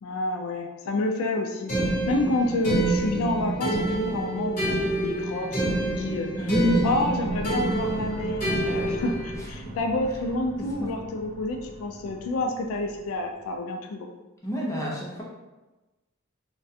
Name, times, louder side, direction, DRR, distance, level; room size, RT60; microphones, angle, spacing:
voice 1, 0.0-6.5 6.8-14.1, left 2 dB, 75° left, 2 dB, 0.3 m, -29 dB
sound 1, 1.7-9.4, right 1 dB, 40° left, 0.8 m, -27 dB
voice 2, 6.4-6.9 9.7-9.8 10.8-10.9 14.4-15.2, left 1 dB, 15° left, -4 dB, 0.5 m, -27 dB
sound 2, 7.3-13.6, right 1 dB, 40° right, 0.4 m, -41 dB
2.4 x 2.2 x 2.6 m, 1.1 s
head